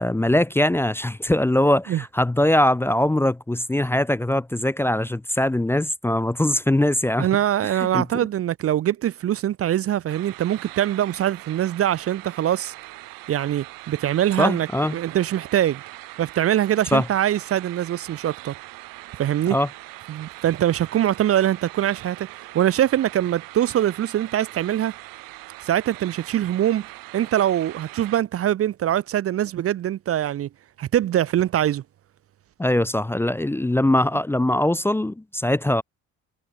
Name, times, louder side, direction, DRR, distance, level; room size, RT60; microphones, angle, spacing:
voice 1, 0.0-7.3 7.9-8.1 14.4-15.0 16.9-17.1 19.5-19.7 32.6-35.8, left 1 dB, 5° left, 0.6 m, -21 dB
voice 2, 7.2-12.7 13.3-14.7 14.9-15.8 16.2-18.5 19.2-19.6 20.1-24.9 25.7-26.9 27.1-30.5 30.8-31.8, right 11 dB, 45° right, 0.6 m, -23 dB
sound 1, 10.1-28.2, right 20 dB, 85° right, 2.0 m, -41 dB
cardioid pair, 110°, 33 cm